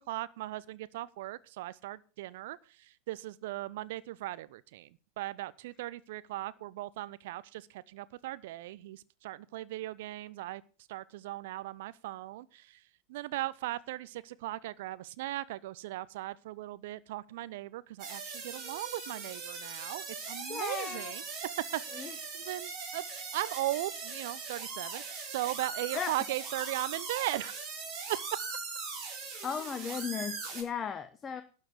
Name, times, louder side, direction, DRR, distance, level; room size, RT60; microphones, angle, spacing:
voice 1, 0.0-4.9 5.2-10.6 10.9-12.8 13.1-21.2 21.7-23.0 23.3-27.6 28.1-28.2, right 16 dB, 50° right, 0.6 m, -38 dB
sound 1, 18.0-30.6, right 4 dB, 35° right, 5.2 m, -40 dB
voice 2, 20.5-21.1 22.0-22.1 25.9-26.1 29.4-31.4, left 7 dB, 20° left, 1.0 m, -36 dB
12.0 x 7.4 x 7.9 m
figure-of-eight pair, 90°, 0 cm